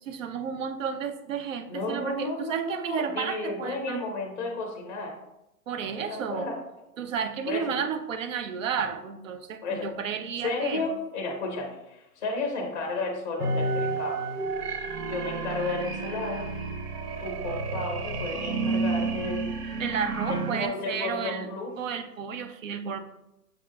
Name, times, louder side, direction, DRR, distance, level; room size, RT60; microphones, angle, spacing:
voice 1, 0.0-4.0 5.7-6.5 7.0-10.9 19.8-21.5 21.8-23.0, right 7 dB, 55° right, 9 dB, 0.5 m, -32 dB
voice 2, 1.7-5.2 5.8-6.6 7.5-7.8 9.6-9.9 10.4-14.2 15.1-16.5 17.2-19.5 20.3-21.7, left 3 dB, 30° left, 0 dB, 0.5 m, -33 dB
sound 1, 13.4-20.7, right 3 dB, 70° right, 0.9 m, -30 dB
6.8 x 2.7 x 2.3 m, 0.89 s
hypercardioid pair, 170°, 48 cm